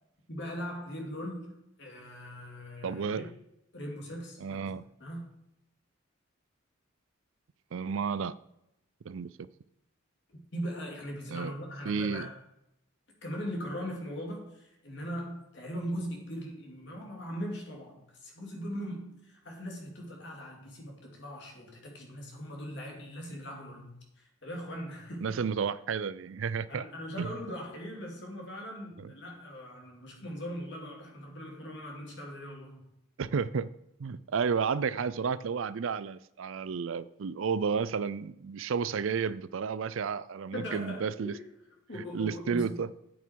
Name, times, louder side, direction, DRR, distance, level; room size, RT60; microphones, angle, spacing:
voice 1, 0.3-3.3 3.7-4.7 5.0-5.3 10.3-12.3 13.2-25.4 26.7-32.9 40.5-41.5 41.9-42.9, equal, 55° left, 0 dB, 2.8 m, -40 dB
voice 2, 2.8-3.3 4.4-4.9 7.7-8.4 9.0-9.5 11.3-11.5 11.9-12.3 25.2-26.8 27.2-27.3 29.0-29.1 33.2-33.7 34.0-41.4 42.1-42.9, right 6 dB, 75° right, 17 dB, 0.4 m, -32 dB
9.1 x 8.4 x 4.6 m, 0.82 s
head